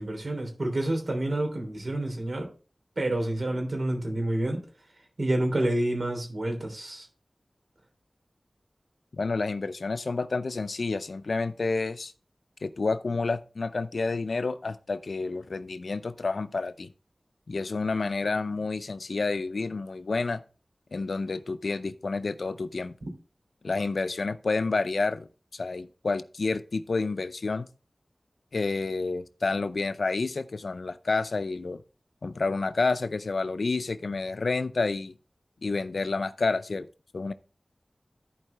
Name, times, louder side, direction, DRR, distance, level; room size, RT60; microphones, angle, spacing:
voice 1, 0.0-2.5 3.0-4.6 5.2-7.1, right 1 dB, 70° right, 3 dB, 3.1 m, -28 dB
voice 2, 9.1-12.1 12.6-16.9 17.5-20.4 20.9-22.9 23.6-27.7 28.5-31.8 32.2-35.1 35.6-36.9 37.1-37.3, left 3 dB, 90° left, 13 dB, 0.5 m, -29 dB
14.0 x 4.7 x 3.3 m, 0.36 s
wide cardioid pair, 70°, 0 cm